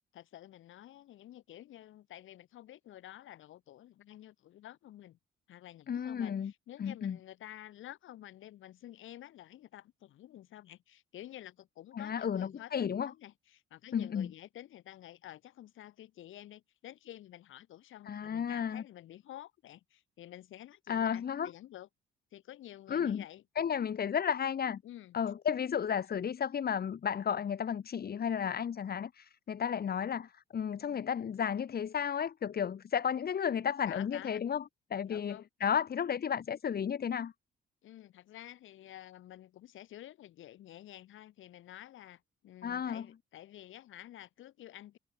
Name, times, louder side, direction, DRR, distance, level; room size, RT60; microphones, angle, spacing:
voice 1, 0.1-5.2 5.5-21.9 22.3-23.4 24.8-25.2 33.9-34.4 35.0-35.5 37.8-45.0, left 13 dB, 80° left, 7.4 m, -50 dB
voice 2, 5.9-6.5 6.8-7.2 11.9-13.1 13.9-14.3 18.1-18.8 20.9-21.5 22.9-23.2 23.6-24.8 25.1-34.6 34.9-37.3 42.6-43.1, left 8 dB, 50° left, 2.8 m, -33 dB
cardioid pair, 90°, 20 cm